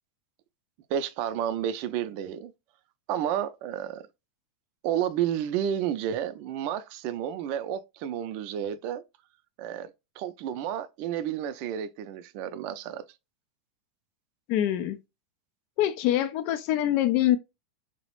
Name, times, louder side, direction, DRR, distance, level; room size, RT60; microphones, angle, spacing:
voice 1, 0.9-2.5 3.1-4.0 4.8-9.0 9.6-9.9 10.2-13.0, right 10 dB, 50° right, 0.4 m, -31 dB
voice 2, 14.5-15.0 15.8-17.4, left 12 dB, 50° left, 0.4 m, -24 dB
2.9 x 2.0 x 2.9 m
supercardioid pair, 130°, 3 cm